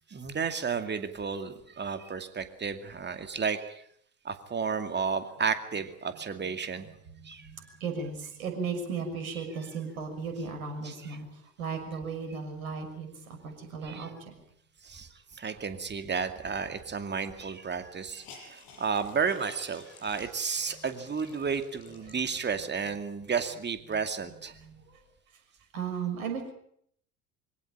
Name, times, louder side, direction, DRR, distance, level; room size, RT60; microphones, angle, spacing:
voice 1, 0.1-3.8 4.2-6.9 7.2-7.8 10.8-10.9 13.9-14.1 14.8-24.5, right 6 dB, 25° right, 8 dB, 2.4 m, -32 dB
voice 2, 6.4-14.4 20.7-20.9 22.1-22.2 23.9-25.0 25.7-26.4, right 5 dB, 65° right, 6 dB, 6.2 m, -37 dB
Hiss, 16.8-16.9 17.1-17.2 17.6-22.7 23.2-23.3 23.7-25.1, left 4 dB, 50° left, 7.9 m, -54 dB
24.5 x 17.0 x 8.8 m, 0.68 s
figure-of-eight pair, 65°, 44 cm